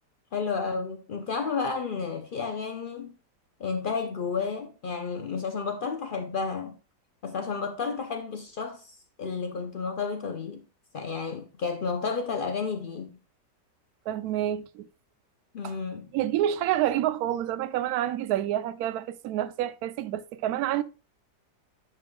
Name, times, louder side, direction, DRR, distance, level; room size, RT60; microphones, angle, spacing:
voice 1, 0.3-3.1 3.6-6.8 7.2-10.6 10.9-13.1 15.5-16.1, left 5 dB, 85° left, 0.4 m, -31 dB
voice 2, 14.1-14.9 15.6-15.7 16.1-20.8, right 12 dB, 70° right, 1.0 m, -28 dB
10.5 x 5.9 x 2.3 m
omnidirectional pair, 1.9 m